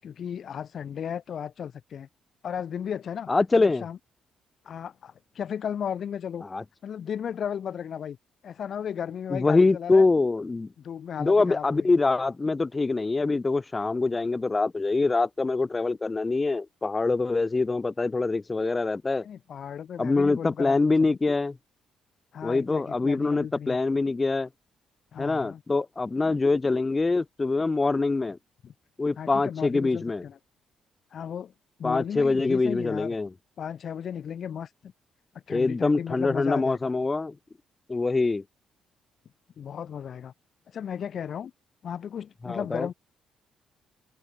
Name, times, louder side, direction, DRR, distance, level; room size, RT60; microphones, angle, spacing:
voice 1, 0.0-2.1 2.4-3.3 3.5-4.0 4.6-6.4 6.8-8.2 8.4-10.1 10.8-11.9 19.2-21.2 22.3-24.0 25.1-25.6 28.6-28.7 29.2-30.4 31.1-31.5 31.8-33.1 33.6-34.9 35.5-36.9 39.6-40.3 40.7-41.5 41.8-42.9, left 8 dB, 60° left, 7.9 m, -35 dB
voice 2, 3.3-3.8 6.5-6.6 9.3-10.7 11.2-19.3 20.0-21.6 22.4-24.5 25.2-28.4 29.0-30.2 31.8-33.3 35.5-37.3 37.9-38.4 42.4-42.9, left 3 dB, 25° left, 0.6 m, -24 dB
cardioid pair, 90°, 0 cm